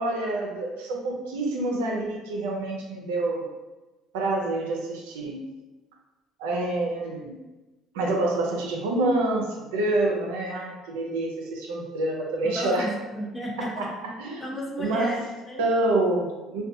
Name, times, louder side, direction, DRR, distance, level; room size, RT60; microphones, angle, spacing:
voice 1, 0.0-3.5 4.1-5.4 6.4-7.3 7.9-12.9 13.6-13.9 14.2-14.4 14.8-15.1 15.6-16.6, right 2 dB, 85° right, -1 dB, 0.5 m, -27 dB
voice 2, 12.4-13.9 14.4-15.7, equal, 25° left, -2 dB, 0.7 m, -33 dB
2.5 x 2.3 x 2.6 m, 1.1 s
hypercardioid pair, 65°, 0 cm